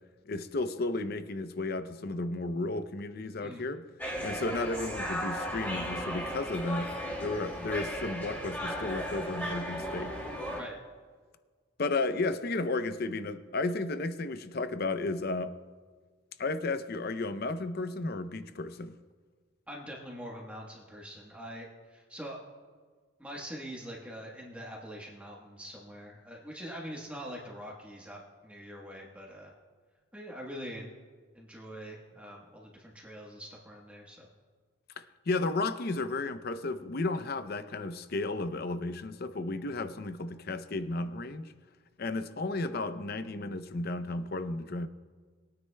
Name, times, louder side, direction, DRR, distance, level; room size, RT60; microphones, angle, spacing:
voice 1, 0.3-3.8 4.2-6.9 7.2-10.2 11.8-15.5 16.4-18.9 35.3-41.5 42.0-44.9, left 2 dB, 50° left, 11 dB, 0.5 m, -33 dB
sound 1, 4.0-10.6, equal, 10° left, 2.7 m, -36 dB
voice 2, 19.7-22.4 23.2-29.5 30.1-30.9 31.3-34.3, equal, 5° right, -3 dB, 1.2 m, -44 dB
21.5 x 9.6 x 2.2 m, 1.5 s
head